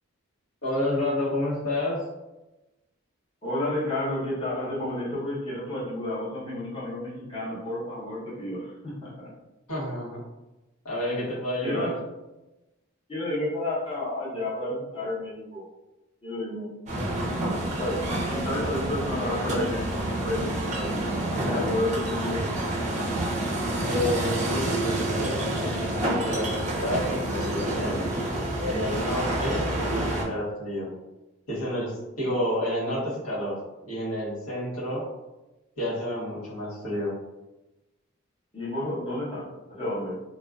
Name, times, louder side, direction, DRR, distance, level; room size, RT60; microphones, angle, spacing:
voice 1, 0.6-2.1 9.7-10.2 10.8-11.9 23.8-28.1 28.6-30.9 31.5-33.6 33.8-35.1 35.8-37.2, left 1 dB, 90° left, -7 dB, 1.0 m, -30 dB
voice 2, 3.4-9.3 11.6-12.0 13.1-15.7 16.2-16.7 17.7-19.9 20.2-21.0 21.3-22.4 38.5-40.2, left 1 dB, 25° left, -9 dB, 0.8 m, -31 dB
sound 1, 16.9-30.2, right 1 dB, 35° right, 0.4 m, -28 dB
2.4 x 2.3 x 2.2 m, 1.0 s
head